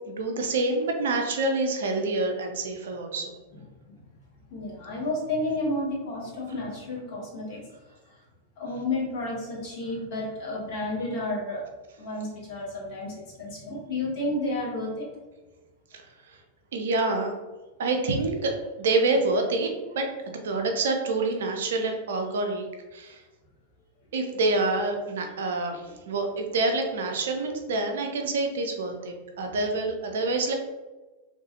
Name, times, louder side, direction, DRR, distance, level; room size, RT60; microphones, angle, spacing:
voice 1, 0.1-3.3 15.9-16.4 16.7-17.3 17.8-20.1 20.4-22.7 22.9-23.2 24.1-30.6, right 2 dB, 60° right, 4 dB, 0.4 m, -27 dB
voice 2, 4.5-7.6 8.6-11.6 12.0-15.1, left 2 dB, 50° left, -4 dB, 1.1 m, -31 dB
2.8 x 2.3 x 2.6 m, 1.2 s
figure-of-eight pair, 90°, 0 cm